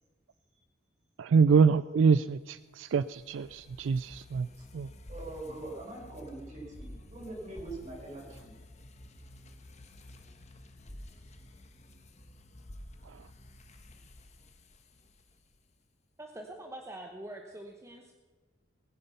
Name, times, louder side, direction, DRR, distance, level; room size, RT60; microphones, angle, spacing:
voice 1, 1.2-4.5 4.7-4.9, right 5 dB, 80° right, 16 dB, 0.3 m, -25 dB
sound 1, 2.3-15.7, left 1 dB, 35° left, 1.2 m, -51 dB
voice 2, 5.1-8.5, right 2 dB, 40° right, -2 dB, 5.7 m, -43 dB
voice 3, 16.2-18.2, right 1 dB, 15° right, 2 dB, 1.0 m, -44 dB
19.5 x 10.5 x 5.6 m, 1.3 s
head